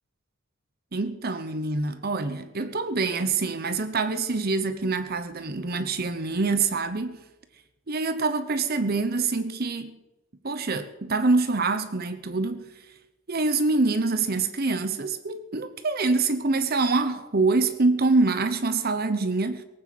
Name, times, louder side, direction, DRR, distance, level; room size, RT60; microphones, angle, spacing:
voice 1, 0.9-7.2 7.9-10.0 10.4-13.0 13.3-19.6, right 3 dB, 50° right, 1.0 m, -25 dB
18.5 x 8.9 x 7.7 m
head